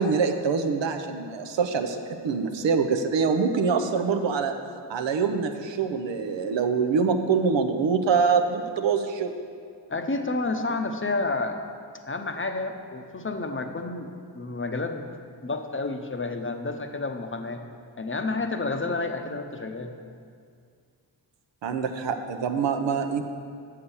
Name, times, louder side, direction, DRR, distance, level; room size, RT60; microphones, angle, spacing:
voice 1, 0.0-4.5 4.9-9.3 21.6-23.2, right 5 dB, 75° right, 6 dB, 0.7 m, -25 dB
voice 2, 9.9-11.6 12.1-15.1 15.4-17.6 18.0-19.9, left 3 dB, 25° left, 5 dB, 0.7 m, -30 dB
6.8 x 5.6 x 7.1 m, 2.2 s
supercardioid pair, 45°, 45 cm